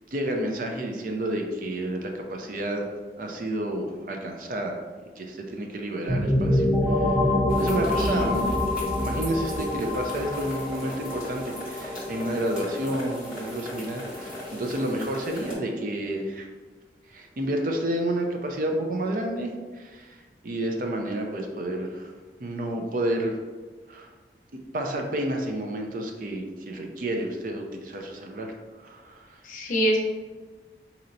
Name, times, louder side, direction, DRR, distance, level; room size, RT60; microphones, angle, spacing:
voice 1, 0.1-2.9 3.2-4.8 5.2-7.2 7.6-8.6 9.0-16.5 17.1-20.2 20.4-22.1 22.4-23.4 23.9-24.1 24.7-28.5 28.8-29.3, right 1 dB, 50° right, 2 dB, 0.4 m, -30 dB
sound 1, 6.1-15.6, left 1 dB, 30° right, 1.1 m, -27 dB
sound 2, 7.5-15.5, left 1 dB, 5° right, 1.1 m, -40 dB
voice 2, 7.9-8.3 29.4-30.0, right 1 dB, 45° left, -1 dB, 0.6 m, -25 dB
4.2 x 2.8 x 2.6 m, 1.4 s
head